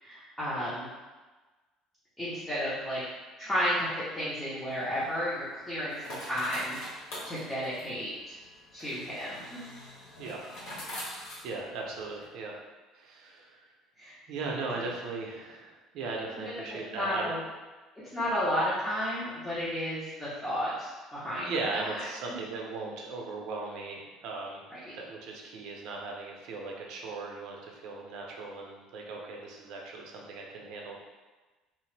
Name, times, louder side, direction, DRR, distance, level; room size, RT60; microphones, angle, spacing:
voice 1, 0.0-0.9 2.2-3.0 3.4-3.9 4.1-6.8 7.2-8.4 8.7-9.7 14.0-14.1 14.7-14.8 16.4-17.4 18.1-21.5 21.8-22.4 24.7-24.9, equal, 10° left, -11 dB, 0.7 m, -33 dB
sound 1, 4.6-12.2, left 1 dB, 85° left, 1.1 m, -45 dB
voice 2, 10.9-12.6 12.9-13.7 14.3-17.3 21.3-24.6 24.9-31.0, right 3 dB, 65° right, -1 dB, 0.5 m, -38 dB
2.8 x 2.0 x 3.2 m, 1.2 s
cardioid pair, 155°, 0 cm